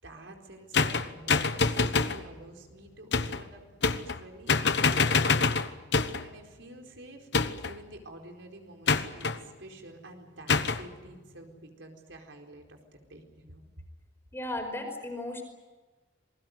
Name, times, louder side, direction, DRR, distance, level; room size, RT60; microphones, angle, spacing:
voice 1, 0.0-5.6 6.2-13.7, right 1 dB, 75° right, 2 dB, 4.5 m, -49 dB
sound 1, 0.7-2.2 3.1-3.4 3.8-4.2 4.5-6.3 7.3-7.8 8.9-9.4 10.5-10.8, left 4 dB, 60° left, 1.1 m, -26 dB
voice 2, 14.3-15.4, left 1 dB, 10° left, 4 dB, 4.9 m, -35 dB
27.5 x 21.5 x 7.9 m, 1.3 s
head